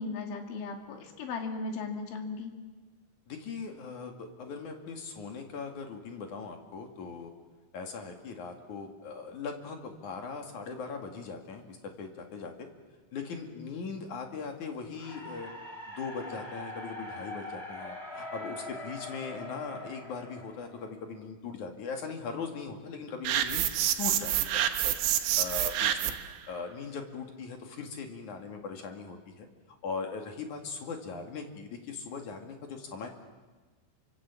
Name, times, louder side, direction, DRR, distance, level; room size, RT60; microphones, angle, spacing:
voice 1, 0.0-2.6, left 4 dB, 80° left, 4 dB, 4.8 m, -36 dB
voice 2, 3.3-7.3 7.7-12.7 13.1-15.5 15.9-23.6 24.0-24.9 25.4-26.1 26.5-29.5 29.8-33.1, left 5 dB, 50° left, 4 dB, 3.2 m, -40 dB
sound 1, 14.9-21.1, left 1 dB, 25° left, 1.5 m, -42 dB
sound 2, 23.2-26.3, right 11 dB, 90° right, 3.8 m, -28 dB
29.0 x 25.5 x 7.5 m, 1.3 s
omnidirectional pair, 5.4 m